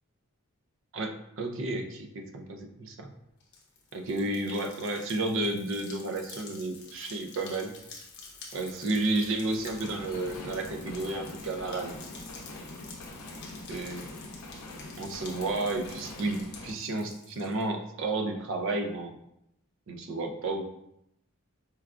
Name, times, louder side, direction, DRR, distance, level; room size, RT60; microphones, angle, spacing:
voice 1, 0.9-3.1 3.9-7.7 8.5-12.0 13.7-14.1 15.0-19.1 19.9-20.7, right 2 dB, 55° right, 4 dB, 0.4 m, -32 dB
sound 1, 3.4-17.6, left 4 dB, 50° left, 0.7 m, -49 dB
sound 2, 7.5-16.7, left 2 dB, 90° left, 0.6 m, -45 dB
4.5 x 2.2 x 2.4 m, 0.80 s
head